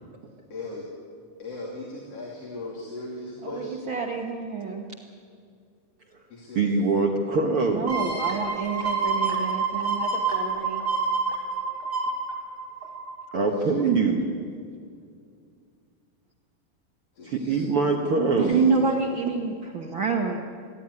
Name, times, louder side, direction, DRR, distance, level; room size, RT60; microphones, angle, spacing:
voice 1, 0.5-0.8 1.4-3.7 6.3-6.8 13.4-13.8 17.2-17.6 18.4-18.5, left 2 dB, 45° left, -4 dB, 3.6 m, -37 dB
voice 2, 3.4-4.8 7.7-10.8 18.4-20.4, right 4 dB, 85° right, 2 dB, 1.0 m, -28 dB
voice 3, 6.5-7.9 13.3-14.2 17.2-18.6, right 4 dB, 60° right, 2 dB, 1.5 m, -23 dB
sound 1, 7.9-13.4 13.8-13.9, right 4 dB, 15° right, 2.9 m, -28 dB
27.0 x 11.5 x 9.8 m, 2.2 s
omnidirectional pair, 4.3 m